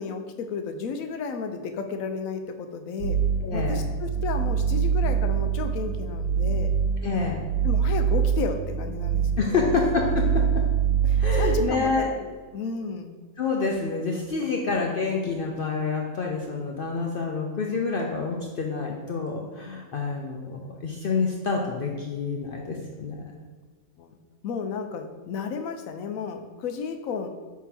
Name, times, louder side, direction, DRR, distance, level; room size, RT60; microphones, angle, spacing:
voice 1, 0.0-3.2 3.5-6.7 7.6-9.7 11.1-13.2 24.0-24.2 24.4-27.3, left 5 dB, 75° left, 6 dB, 1.0 m, -32 dB
sound 1, 3.0-11.7, right 7 dB, 80° right, 1.1 m, -25 dB
voice 2, 3.4-3.8 7.0-7.4 9.4-10.6 11.2-12.1 13.4-23.2, left 4 dB, 60° left, 0 dB, 0.6 m, -28 dB
5.9 x 3.8 x 4.3 m, 1.4 s
omnidirectional pair, 1.5 m